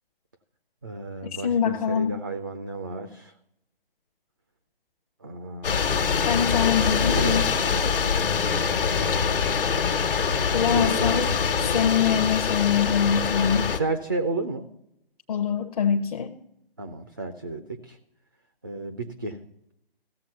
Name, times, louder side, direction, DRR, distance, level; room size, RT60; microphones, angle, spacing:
voice 1, 0.8-3.3 5.2-8.0 10.7-11.9 13.7-14.7 16.8-18.0 18.6-19.4, right 3 dB, 20° right, 7 dB, 0.3 m, -33 dB
voice 2, 1.4-2.2 6.2-7.5 10.5-11.3 11.7-13.7 15.3-16.3, left 8 dB, 40° left, 5 dB, 0.7 m, -24 dB
sound 1, 5.6-13.8, left 6 dB, 60° left, 1.3 m, -24 dB
15.5 x 7.2 x 5.7 m, 0.79 s
figure-of-eight pair, 140°, 30 cm